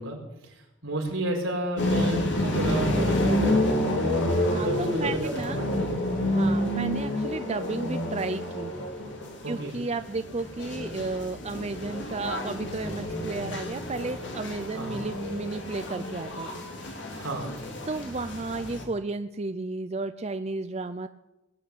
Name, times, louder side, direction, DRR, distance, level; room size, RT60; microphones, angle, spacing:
voice 1, 0.0-4.1 4.6-6.6 9.4-9.8 14.8-15.0 17.1-17.6, right 1 dB, 80° right, 0 dB, 4.8 m, -32 dB
sound 1, 1.8-18.8, left 1 dB, 60° left, 3.2 m, -29 dB
voice 2, 4.5-5.6 6.3-8.7 9.5-16.6 17.9-21.1, right 3 dB, 30° right, 10 dB, 0.5 m, -33 dB
20.0 x 8.5 x 8.5 m, 0.98 s
head